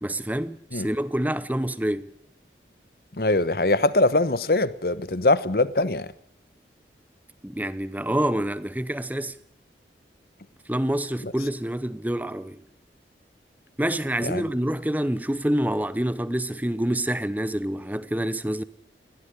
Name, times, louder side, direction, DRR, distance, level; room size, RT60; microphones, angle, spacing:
voice 1, 0.0-2.1 7.4-9.4 10.7-12.6 13.8-18.6, right 1 dB, 10° right, 0.8 m, -27 dB
voice 2, 3.2-6.1 11.2-11.3 14.2-14.4, left 2 dB, 55° left, 1.1 m, -22 dB
21.5 x 15.5 x 9.9 m
head